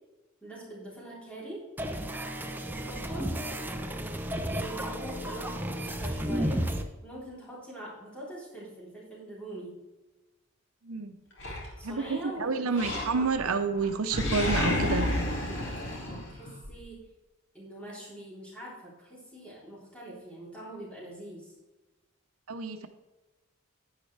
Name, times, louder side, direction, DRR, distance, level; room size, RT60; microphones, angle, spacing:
voice 1, 0.4-1.7 2.7-3.3 4.6-6.7 7.0-9.8 11.8-13.2 15.4-17.0 17.5-21.5, right 1 dB, 5° left, -6 dB, 3.6 m, -43 dB
sound 1, 1.8-6.8, equal, 10° right, 0.7 m, -33 dB
voice 2, 10.8-11.1 11.8-15.1 22.5-22.9, right 4 dB, 85° right, 7 dB, 0.8 m, -29 dB
Animal, 11.4-12.2 12.7-13.5 13.8-16.7, left 1 dB, 60° left, 2.4 m, -31 dB
10.5 x 9.6 x 3.3 m, 1.1 s
head